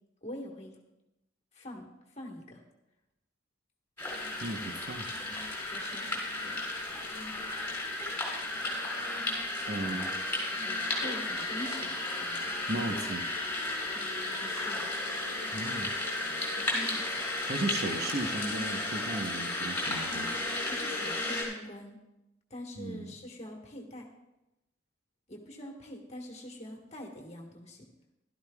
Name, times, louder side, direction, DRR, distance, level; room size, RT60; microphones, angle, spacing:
voice 1, 0.2-0.8 1.5-1.9 2.1-2.6 5.7-6.6 9.7-10.0 10.5-13.0 13.9-14.8 16.5-17.2 20.1-22.0 22.5-24.1 25.3-27.9, left 1 dB, 35° left, 0 dB, 1.5 m, -44 dB
sound 1, 4.0-21.4, left 2 dB, 10° left, 3.6 m, -34 dB
voice 2, 4.4-5.1 9.7-10.1 12.7-13.2 15.5-15.9 17.5-20.4 22.8-23.1, right 2 dB, 50° right, 5 dB, 1.0 m, -35 dB
15.5 x 12.5 x 2.4 m, 0.94 s
head